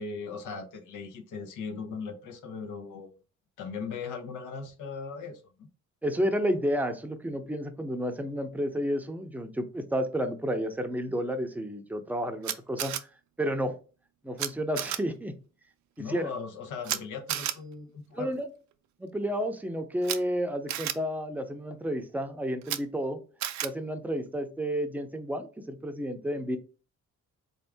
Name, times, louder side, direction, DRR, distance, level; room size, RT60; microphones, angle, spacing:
voice 1, 0.0-3.1 3.6-5.7 16.0-18.4, left 5 dB, 85° left, 0.9 m, -38 dB
voice 2, 6.0-12.9 13.4-13.7 14.2-15.3 16.0-16.3 18.1-18.5 19.0-23.2 23.6-26.6, equal, 5° right, 0.6 m, -31 dB
Camera, 12.4-13.0 14.4-14.5 14.8-15.0 16.8-17.0 17.3-17.5 20.0-20.2 20.7-20.9 22.6-22.8 23.4-23.7, right 12 dB, 70° right, 0.5 m, -31 dB
3.6 x 2.7 x 3.4 m
cardioid pair, 90°, 30 cm